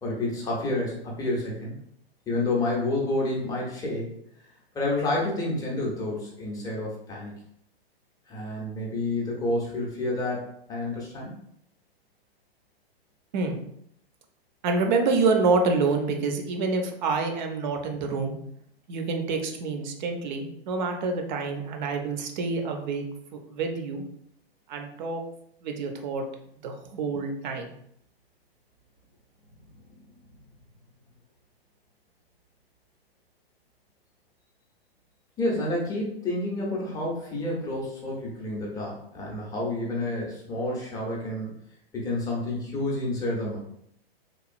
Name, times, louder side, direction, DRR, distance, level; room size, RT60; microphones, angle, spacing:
voice 1, 0.0-1.8 2.3-4.1 4.7-7.4 8.3-11.3 29.9-30.0 35.4-41.5 41.9-43.6, left 2 dB, 10° left, -3 dB, 0.6 m, -29 dB
voice 2, 14.6-18.4 18.9-23.0 23.5-24.0 24.7-25.2 25.6-26.3 26.6-27.7, right 4 dB, 45° right, 4 dB, 0.6 m, -27 dB
3.0 x 2.2 x 2.5 m, 0.71 s
hypercardioid pair, 130°, 31 cm